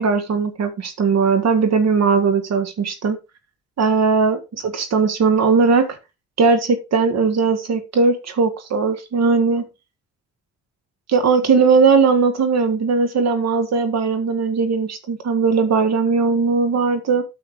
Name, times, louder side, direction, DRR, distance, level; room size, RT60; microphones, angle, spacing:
voice 1, 0.0-3.2 3.8-6.0 6.4-9.6 11.1-17.2, right 4 dB, 60° right, 9 dB, 1.8 m, -18 dB
9.1 x 7.0 x 3.7 m, 0.25 s
cardioid pair, 90°, 30 cm